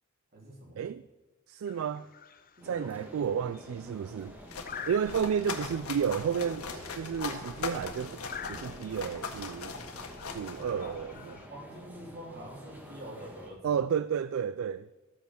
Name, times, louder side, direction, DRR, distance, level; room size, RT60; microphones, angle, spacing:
voice 1, 0.3-0.8 2.6-2.9 9.6-9.8 10.6-11.0 11.5-13.8, right 1 dB, 45° right, 3.7 m, -45 dB
voice 2, 1.5-2.1 2.6-4.4 4.8-8.2 8.5-9.7 10.3-11.4 13.6-14.9, right 7 dB, 65° right, 0.3 m, -32 dB
sound 1, 1.7-11.5, left 7 dB, 40° left, 0.7 m, -49 dB
sound 2, 2.6-13.5, equal, 10° right, 1.5 m, -49 dB
sound 3, 4.2-11.2, left 4 dB, 85° left, 1.6 m, -40 dB
14.0 x 8.4 x 6.2 m
head